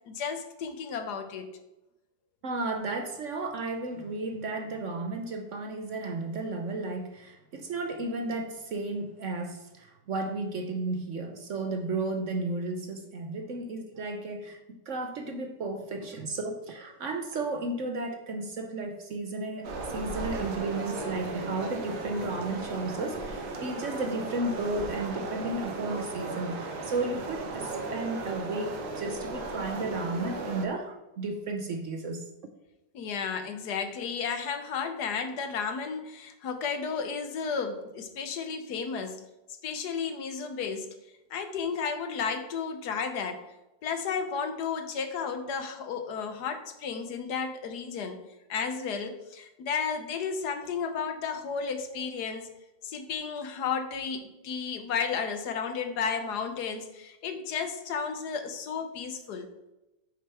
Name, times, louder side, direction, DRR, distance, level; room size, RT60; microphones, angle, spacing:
voice 1, 0.1-1.5 32.9-39.2 39.6-40.9 41.3-43.4 43.8-48.2 48.5-52.5 52.8-59.5, left 6 dB, 75° left, 7 dB, 1.4 m, -33 dB
voice 2, 2.4-32.2, right 2 dB, 55° right, 5 dB, 0.9 m, -33 dB
sound 1, 19.6-30.7, right 3 dB, 75° right, 1.6 m, -36 dB
8.8 x 6.8 x 3.4 m, 0.98 s
omnidirectional pair, 1.8 m